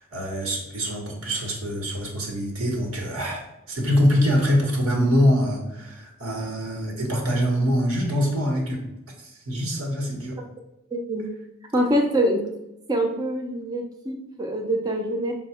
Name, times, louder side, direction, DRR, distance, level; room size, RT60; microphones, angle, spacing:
voice 1, 0.0-8.8 9.2-10.4, equal, 90° right, 0 dB, 1.0 m, -24 dB
voice 2, 10.9-11.3 11.7-12.4 12.9-15.3, equal, 20° right, 2 dB, 0.5 m, -24 dB
4.5 x 2.1 x 4.2 m, 0.91 s
head